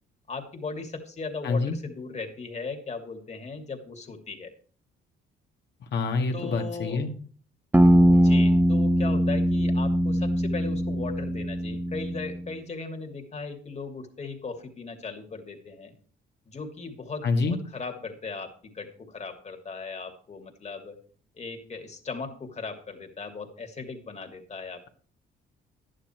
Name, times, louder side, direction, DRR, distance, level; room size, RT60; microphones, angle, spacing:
voice 1, 0.3-4.5 6.3-7.0 8.2-15.9 16.5-21.0 21.4-24.9, left 4 dB, 35° left, 4 dB, 2.7 m, -37 dB
voice 2, 1.4-1.8 5.9-7.1 17.2-17.6, left 4 dB, 60° left, 3 dB, 2.1 m, -26 dB
sound 1, 7.7-12.4, equal, 10° right, 1.3 m, -21 dB
11.5 x 10.0 x 4.5 m, 0.42 s
cardioid pair, 90°, 20 cm